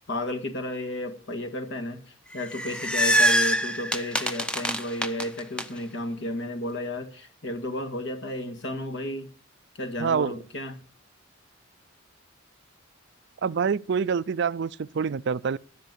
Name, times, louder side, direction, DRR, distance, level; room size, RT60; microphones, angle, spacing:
voice 1, 0.1-9.3 9.8-10.8, left 1 dB, 60° left, 1.8 m, -33 dB
sound 1, 2.3-5.6, equal, 5° left, 0.6 m, -24 dB
voice 2, 10.0-10.3 13.4-15.6, right 6 dB, 60° right, 0.4 m, -26 dB
10.0 x 6.6 x 8.1 m
head